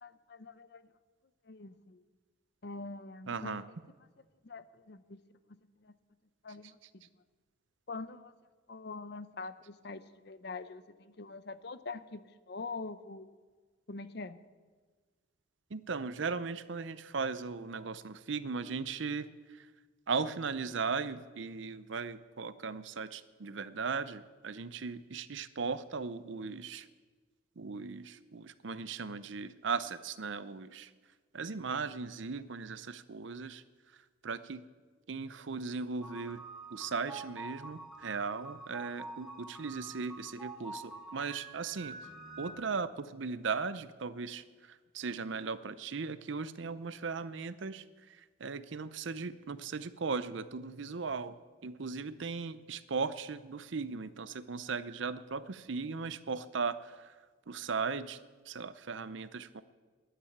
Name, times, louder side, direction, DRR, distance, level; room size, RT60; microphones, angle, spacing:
voice 1, 0.0-0.8 1.5-2.0 2.6-3.6 4.4-5.2 5.5-5.9 6.4-7.0 7.9-8.3 8.7-13.3 13.9-14.4, left 3 dB, 55° left, 14 dB, 0.7 m, -44 dB
voice 2, 3.3-3.6 15.7-19.7 20.1-26.9 27.6-30.9 31.3-33.6 33.9-34.6 35.1-36.4 36.7-42.0 42.4-51.4 51.6-57.2 57.5-59.6, right 4 dB, 65° right, 14 dB, 0.6 m, -38 dB
sound 1, 36.0-42.5, right 3 dB, ahead, 1.8 m, -47 dB
11.5 x 10.0 x 8.6 m, 1.4 s
head